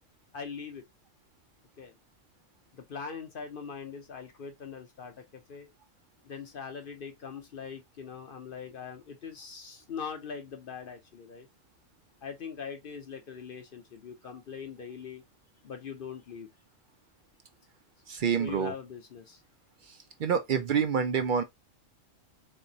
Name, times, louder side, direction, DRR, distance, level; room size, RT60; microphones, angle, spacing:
voice 1, 0.3-0.8 1.8-1.9 2.7-5.7 6.2-11.5 12.2-15.2 15.6-16.5 18.4-19.4, left 6 dB, 55° left, 0.7 m, -41 dB
voice 2, 18.1-18.7 20.2-21.4, right 7 dB, 60° right, 0.5 m, -27 dB
3.9 x 3.2 x 2.7 m
omnidirectional pair, 1.4 m